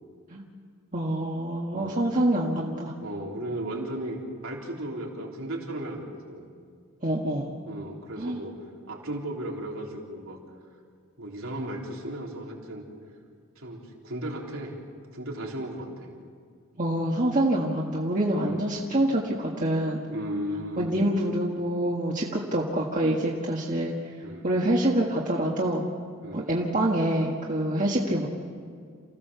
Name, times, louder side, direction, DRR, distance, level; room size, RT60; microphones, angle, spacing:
voice 1, 0.9-2.9 7.0-7.5 8.2-8.4 16.8-20.0 20.8-23.9 24.4-25.8 26.3-28.3, right 1 dB, 40° right, -3 dB, 1.8 m, -26 dB
voice 2, 1.7-2.1 3.0-6.5 7.7-8.5 8.9-10.4 11.2-12.9 13.6-14.8 15.1-16.1 18.4-18.6 20.1-20.9 24.2-24.5 26.2-26.5, right 1 dB, 80° right, -1 dB, 3.7 m, -35 dB
29.0 x 16.5 x 7.0 m, 2.1 s
head